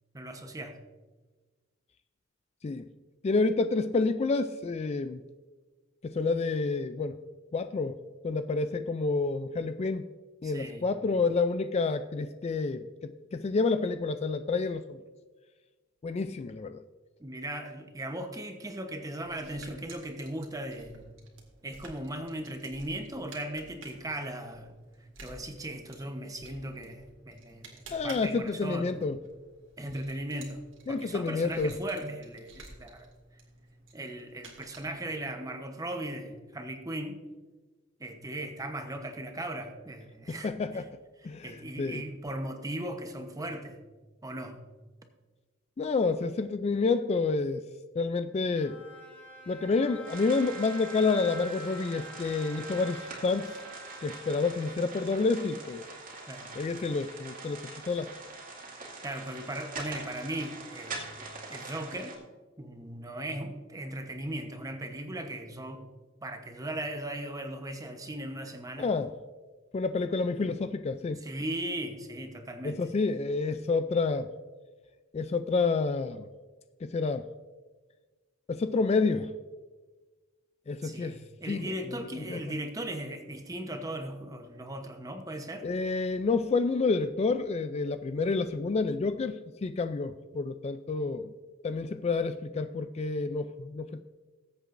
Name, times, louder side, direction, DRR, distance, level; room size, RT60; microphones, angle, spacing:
voice 1, 0.1-0.8 10.4-10.9 17.2-21.1 21.6-24.7 25.2-28.9 29.8-30.6 30.9-33.1 33.9-37.2 38.0-40.8 41.4-43.8 44.2-44.6 56.3-56.6 58.7-62.2 62.6-65.8 66.2-68.9 71.2-72.8 80.8-85.7, right 1 dB, 20° right, 0.9 m, -38 dB
voice 2, 3.2-5.2 6.0-7.2 7.5-8.0 8.2-10.1 10.4-15.0 16.0-16.8 27.9-29.2 30.9-31.7 40.3-40.9 41.2-42.0 45.8-47.6 48.0-48.8 49.5-53.5 54.0-55.8 56.5-58.1 68.8-69.1 69.7-71.2 72.6-74.3 75.1-76.3 76.8-77.3 78.5-79.3 80.7-82.5 85.6-91.3 91.6-94.0, left 4 dB, 30° left, 0.3 m, -29 dB
sound 1, 19.2-35.3, right 3 dB, 70° right, 2.0 m, -53 dB
Bowed string instrument, 48.5-55.0, right 1 dB, 10° left, 2.7 m, -47 dB
sound 2, 50.0-62.2, right 3 dB, 45° right, 2.2 m, -44 dB
20.0 x 8.1 x 2.6 m
head